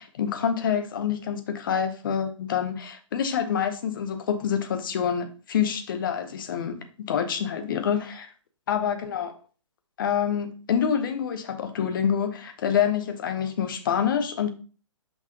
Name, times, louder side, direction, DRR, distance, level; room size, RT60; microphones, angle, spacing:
voice 1, 0.0-6.8 7.1-8.3 8.7-9.3 10.0-14.5, left 8 dB, 40° left, 0.9 m, -27 dB
5.7 x 5.7 x 2.9 m
figure-of-eight pair, 130°, 17 cm